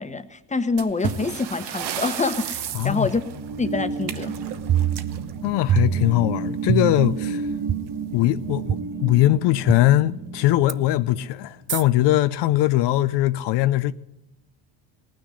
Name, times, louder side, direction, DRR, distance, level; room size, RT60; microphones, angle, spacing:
voice 1, 0.0-3.2 3.6-4.3, left 3 dB, 15° left, 1.1 m, -26 dB
sound 1, 0.8-6.2 7.4-7.6 7.9-8.0 8.6-8.7 9.4-9.7, right 8 dB, 60° right, 1.2 m, -34 dB
sound 2, 2.2-11.4, right 5 dB, 45° right, 1.8 m, -32 dB
voice 2, 2.7-3.1 5.4-7.5 8.1-13.9, left 15 dB, 65° left, 0.6 m, -21 dB
sound 3, 4.7-5.4 5.7-6.3 6.7-7.2 7.7-7.8 8.7-8.8 9.7-9.8 10.7-10.8 11.7-11.8, right 9 dB, 25° right, 0.4 m, -23 dB
18.0 x 6.4 x 9.8 m
supercardioid pair, 80°, 46 cm